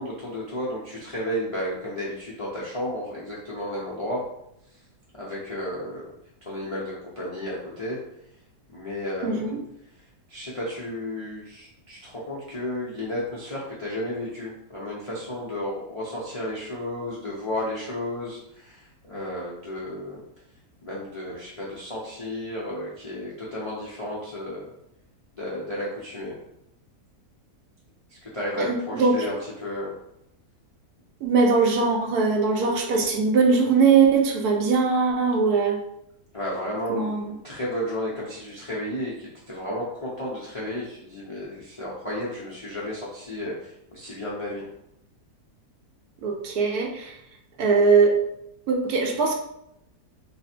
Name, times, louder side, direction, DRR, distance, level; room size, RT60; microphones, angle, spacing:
voice 1, 0.0-4.2 5.1-6.1 6.5-8.0 8.7-9.5 10.3-20.2 20.8-24.7 25.4-26.4 28.2-30.0 36.3-44.6, left 1 dB, 40° left, -6 dB, 0.4 m, -33 dB
voice 2, 9.2-9.6 28.6-29.3 31.2-35.8 36.9-37.2 46.2-47.1 47.6-48.2 48.7-49.3, right 4 dB, 75° right, 1 dB, 1.1 m, -21 dB
3.3 x 2.1 x 4.2 m, 0.78 s
omnidirectional pair, 1.7 m